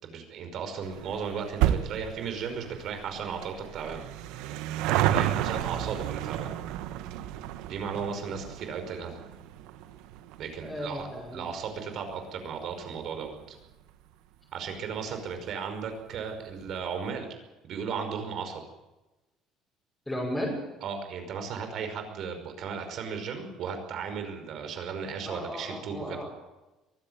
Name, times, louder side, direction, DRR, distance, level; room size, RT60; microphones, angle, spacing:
voice 1, 0.0-4.0 4.9-6.5 7.6-9.2 10.4-11.1 11.3-13.6 14.5-17.3 17.6-18.6 20.8-26.2, right 6 dB, 45° right, 6 dB, 5.5 m, -35 dB
sound 1, 0.8-13.6 13.9-14.0 14.9-15.0 15.2-15.3 15.5-15.6, right 12 dB, 80° right, 1.4 m, -32 dB
voice 2, 10.6-11.4 20.1-20.6 25.2-26.3, equal, 5° left, -5 dB, 6.1 m, -34 dB
23.0 x 16.0 x 9.1 m, 1.0 s
cardioid pair, 155°, 0 cm